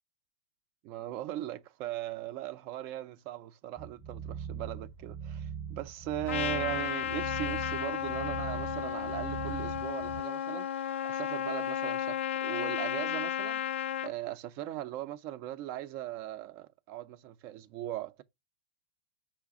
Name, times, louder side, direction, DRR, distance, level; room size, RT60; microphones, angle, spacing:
voice 1, 0.8-18.2, right 13 dB, 40° right, 0.5 m, -39 dB
sound 1, 3.8-10.2, right 7 dB, ahead, 0.7 m, -41 dB
Trumpet, 6.3-14.1, left 10 dB, 85° left, 0.3 m, -33 dB
6.0 x 2.1 x 3.6 m
hypercardioid pair, 145°, 6 cm